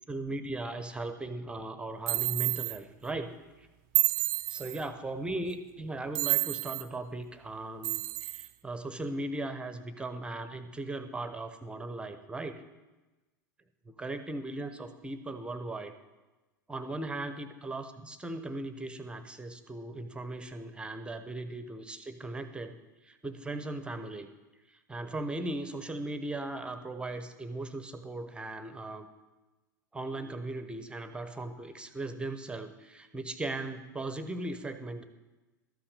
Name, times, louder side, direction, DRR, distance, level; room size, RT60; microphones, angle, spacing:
voice 1, 0.1-3.7 4.5-12.6 13.9-15.9 16.7-22.8 23.0-24.3 24.7-29.1 29.9-35.0, right 2 dB, 10° right, 9 dB, 0.8 m, -38 dB
sound 1, 2.1-2.8 3.9-4.8 6.1-6.9 7.8-8.5, right 19 dB, 45° right, 0.5 m, -29 dB
13.0 x 5.7 x 6.8 m, 1.1 s
figure-of-eight pair, 85°, 10 cm